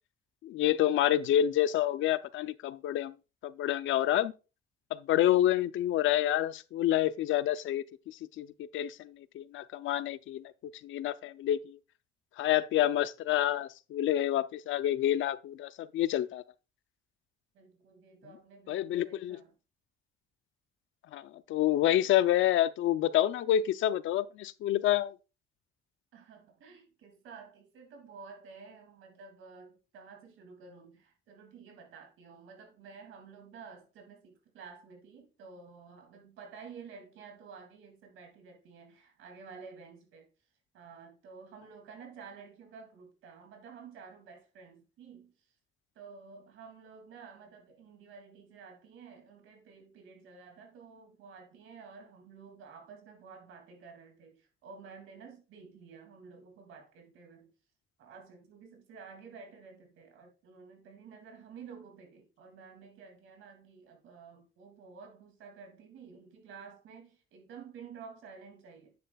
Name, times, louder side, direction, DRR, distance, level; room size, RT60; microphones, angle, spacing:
voice 1, 0.4-3.1 3.4-4.3 4.9-10.4 10.8-11.8 12.4-16.4 18.7-19.4 21.1-25.2, left 12 dB, 75° left, 0.5 m, -28 dB
voice 2, 17.5-19.5 26.1-40.3 40.7-45.5 45.9-57.5 58.0-68.9, right 5 dB, 85° right, 2.5 m, -51 dB
9.6 x 7.5 x 2.3 m
cardioid pair, 90°, 20 cm